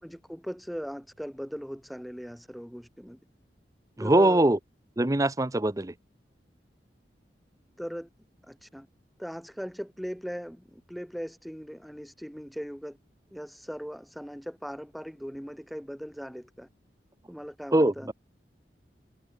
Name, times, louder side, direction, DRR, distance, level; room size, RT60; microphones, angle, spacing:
voice 1, 0.0-3.2 4.0-4.5 7.8-8.1 8.4-8.9 9.2-13.0 13.3-16.7 17.3-18.1, equal, ahead, 3.5 m, -39 dB
voice 2, 4.0-4.6 5.0-5.9 17.7-18.1, right 1 dB, 20° right, 0.8 m, -22 dB
head